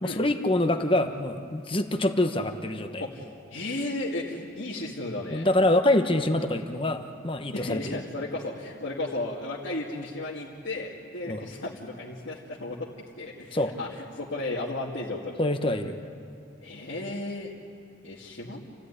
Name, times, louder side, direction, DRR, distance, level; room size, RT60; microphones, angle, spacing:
voice 1, 0.0-3.0 5.3-7.8 11.3-11.4 13.5-13.7 15.4-16.0, left 1 dB, 25° left, 7 dB, 1.2 m, -25 dB
voice 2, 3.0-5.5 7.5-12.9 13.2-15.4 16.6-17.5 18.0-18.6, left 2 dB, 65° left, -6 dB, 2.3 m, -34 dB
28.5 x 15.5 x 9.9 m, 2.5 s
head